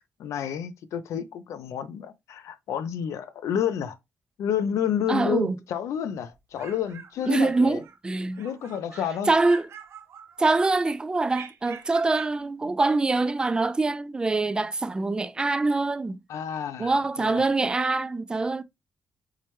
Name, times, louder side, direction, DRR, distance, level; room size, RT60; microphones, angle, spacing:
voice 1, 0.0-4.0 4.4-7.8 8.4-9.3 16.3-17.4, left 8 dB, 85° left, 0.5 m, -30 dB
voice 2, 5.1-5.6 7.3-8.4 9.3-9.7 10.4-16.2 16.8-18.6, right 3 dB, 15° right, 0.3 m, -24 dB
sound 1, 6.3-8.0 8.3-9.1 9.4-10.7 11.3-12.4, right 6 dB, 65° right, 0.6 m, -46 dB
4.6 x 2.2 x 2.9 m
cardioid pair, 125°, 5 cm